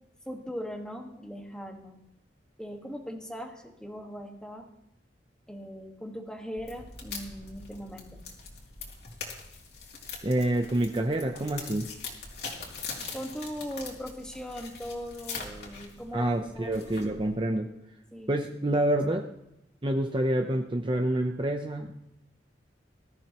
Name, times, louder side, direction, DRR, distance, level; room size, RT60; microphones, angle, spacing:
voice 1, 0.2-2.0 2.6-4.7 5.5-8.2 13.1-16.9 18.1-18.4, equal, 5° left, 2 dB, 1.6 m, -39 dB
sound 1, 6.6-17.4, left 4 dB, 60° left, 3.0 m, -42 dB
voice 2, 10.2-11.9 16.1-17.7 18.3-19.3 19.8-22.0, right 1 dB, 30° right, 4 dB, 0.7 m, -27 dB
20.5 x 13.5 x 3.0 m, 0.85 s
head